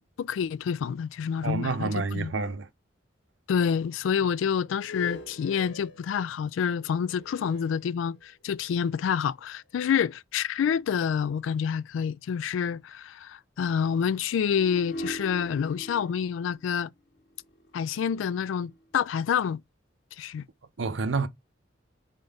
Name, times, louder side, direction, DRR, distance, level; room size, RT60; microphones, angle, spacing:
voice 1, 0.2-2.3 3.5-16.9 17.7-19.6 20.2-20.5, left 7 dB, 85° left, 0.3 m, -28 dB
voice 2, 1.4-2.7 20.8-21.3, right 4 dB, 75° right, 0.6 m, -28 dB
sound 1, 4.7-8.5 9.2-9.3 14.5-18.8, left 1 dB, 65° left, 1.0 m, -43 dB
4.0 x 3.9 x 3.4 m
head